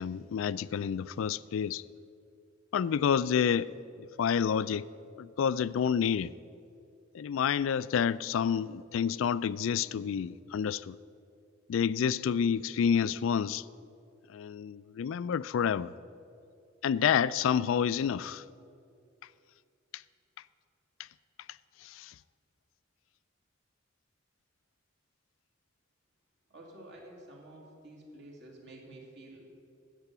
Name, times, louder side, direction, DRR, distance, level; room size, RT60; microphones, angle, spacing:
voice 1, 0.0-1.8 2.7-3.7 4.2-4.9 5.2-6.3 7.1-11.0 11.7-13.6 14.3-15.9 16.8-18.4 21.8-22.1, left 7 dB, 75° left, 0.3 m, -29 dB
voice 2, 26.5-29.5, right 1 dB, 60° right, 2.4 m, -50 dB
12.5 x 8.3 x 6.8 m
head